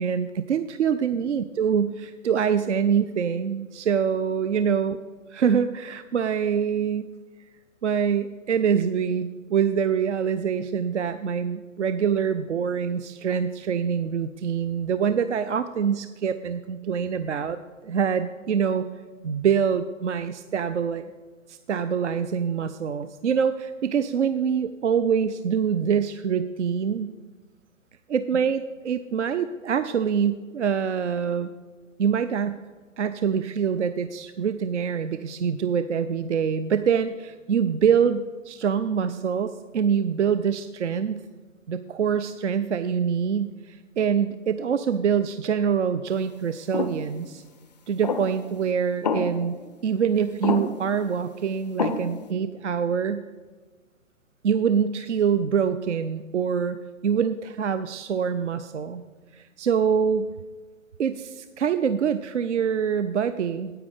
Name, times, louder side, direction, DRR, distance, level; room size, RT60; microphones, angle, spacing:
voice 1, 0.0-5.0 5.3-7.1 7.8-17.6 17.8-18.9 19.2-21.1 21.5-27.1 28.1-31.5 32.0-32.6 33.0-41.2 41.7-47.4 47.9-49.6 49.8-53.2 54.4-56.8 57.0-59.0 59.3-60.3 61.0-63.7, right 7 dB, 60° right, 12 dB, 0.5 m, -25 dB
sound 1, 46.7-47.0 48.0-48.5 49.0-49.6 50.4-50.9 51.8-52.3, left 4 dB, 35° left, 0.4 m, -28 dB
9.6 x 8.8 x 4.9 m, 1.4 s
figure-of-eight pair, 125°, 41 cm